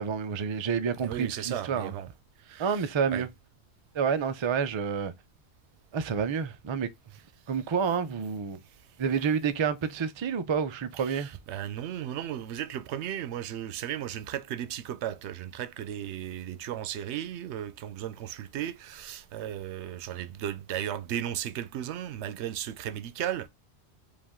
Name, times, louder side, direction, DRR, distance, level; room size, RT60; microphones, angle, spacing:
voice 1, 0.0-1.9 2.6-3.3 3.9-5.1 5.9-6.9 7.5-8.6 9.0-11.3, right 6 dB, 45° right, 0.3 m, -29 dB
voice 2, 1.0-2.1 2.5-3.3 11.0-23.5, right 11 dB, 90° right, 0.9 m, -35 dB
5.0 x 2.5 x 3.5 m
omnidirectional pair, 1.1 m